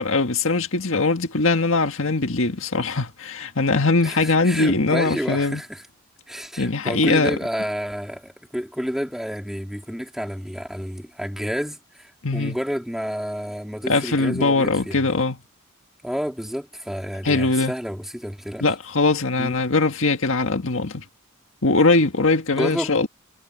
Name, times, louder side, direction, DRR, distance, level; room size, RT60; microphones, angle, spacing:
voice 1, 0.0-5.6 6.6-7.4 12.2-12.6 13.9-15.4 17.2-17.7 18.6-21.0 21.6-23.1, left 3 dB, 75° left, 1.7 m, -21 dB
voice 2, 4.0-5.8 6.3-15.1 16.0-18.6 19.4-19.6 22.5-22.9, equal, ahead, 3.5 m, -30 dB
head